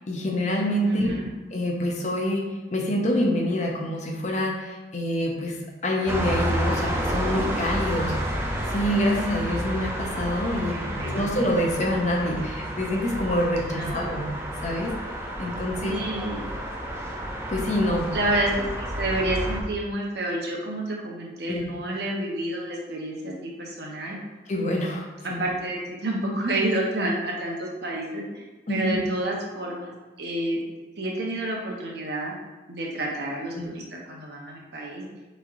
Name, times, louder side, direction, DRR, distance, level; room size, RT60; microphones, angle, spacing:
voice 1, 0.1-1.1 1.5-8.3 8.7-14.3 14.6-15.0 15.4-16.0 17.5-18.2 21.5-21.7 24.5-25.5 28.7-29.0 33.6-33.7, left 1 dB, 40° left, 0 dB, 0.6 m, -26 dB
voice 2, 0.8-1.3 10.7-11.3 13.7-14.3 15.8-16.4 18.1-24.2 25.2-30.6 31.0-32.3 32.7-35.0, right 1 dB, 60° right, -2 dB, 0.9 m, -29 dB
sound 1, 6.1-19.6, equal, 15° right, 0.5 m, -30 dB
6.3 x 3.2 x 2.6 m, 1.2 s
head